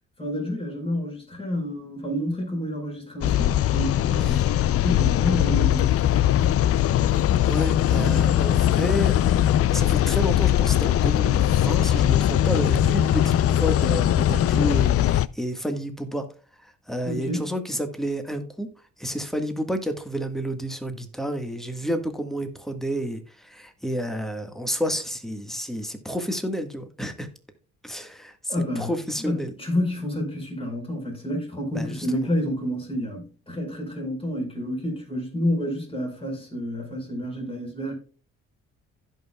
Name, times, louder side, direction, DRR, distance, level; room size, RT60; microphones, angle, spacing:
voice 1, 0.2-4.4 4.7-6.6 17.1-17.5 28.5-28.9 29.2-37.9, equal, 20° left, 4.6 m, -29 dB
sound 1, 3.2-15.3, left 12 dB, 50° left, 0.4 m, -20 dB
voice 2, 7.4-16.3 16.6-18.7 19.0-27.3 27.8-29.5 31.7-32.3, equal, ahead, 1.5 m, -30 dB
16.0 x 5.5 x 2.3 m
cardioid pair, 90°, 30 cm